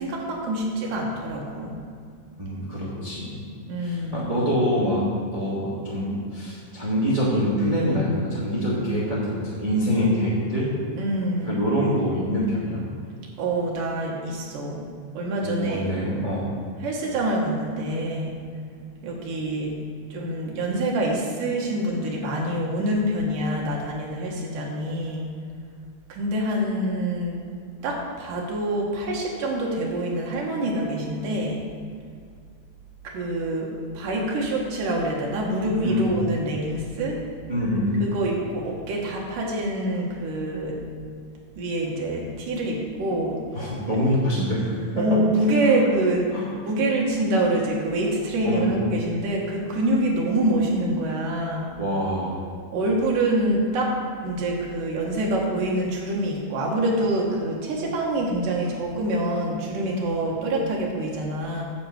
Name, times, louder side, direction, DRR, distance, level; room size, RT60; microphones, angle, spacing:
voice 1, 0.0-1.7 3.7-4.3 11.0-11.6 13.4-14.9 15.1-15.8 16.8-18.3 19.0-19.8 20.1-25.3 26.1-27.4 27.8-31.6 33.0-33.7 33.9-37.2 38.0-40.8 41.6-43.4 45.0-46.2 46.6-51.7 52.7-53.9 54.2-61.6, right 1 dB, 65° right, -2 dB, 3.1 m, -26 dB
voice 2, 2.4-3.3 3.8-5.0 5.3-10.7 11.4-12.8 15.4-16.4 35.8-36.1 37.5-38.0 43.5-45.2 45.6-45.7 46.3-46.5 48.4-48.7 51.8-52.3, equal, 15° right, -8 dB, 1.6 m, -25 dB
9.6 x 4.8 x 7.9 m, 2.2 s
omnidirectional pair, 4.1 m